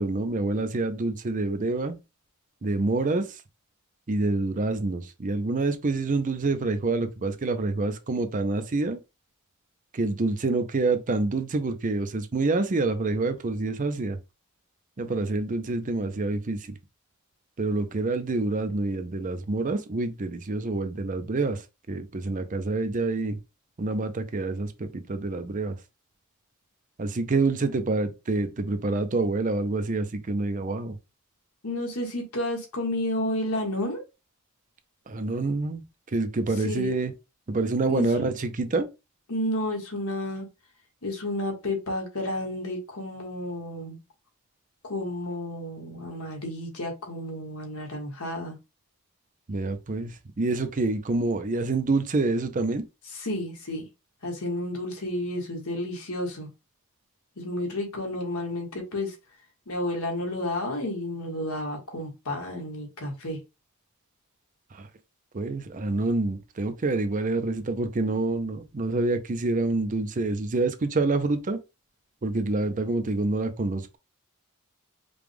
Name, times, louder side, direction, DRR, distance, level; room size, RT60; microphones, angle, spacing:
voice 1, 0.0-1.9 2.6-3.4 4.1-9.0 9.9-14.2 15.0-16.7 17.6-23.4 23.8-25.8 27.0-31.0 35.1-35.8 36.1-37.1 37.5-38.9 49.5-52.8 64.7-64.9 65.3-71.6 72.2-74.0, right 3 dB, 35° right, 0.5 m, -27 dB
voice 2, 31.6-34.0 36.6-36.9 37.9-38.2 39.3-40.5 41.0-44.0 44.8-48.6 53.1-53.8 54.2-56.5 57.4-59.1 59.7-63.4, left 1 dB, 80° left, 1.6 m, -31 dB
5.1 x 2.3 x 3.4 m
head